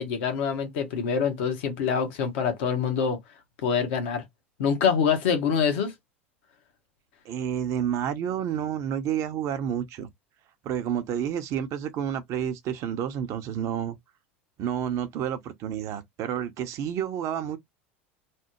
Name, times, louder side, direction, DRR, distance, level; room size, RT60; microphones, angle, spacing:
voice 1, 0.0-3.2 3.6-4.2 4.6-5.9, left 6 dB, 65° left, 1.1 m, -25 dB
voice 2, 7.2-10.1 10.6-14.0 14.6-17.6, right 9 dB, 50° right, 0.8 m, -30 dB
3.3 x 2.1 x 3.0 m
hypercardioid pair, 85°, 7 cm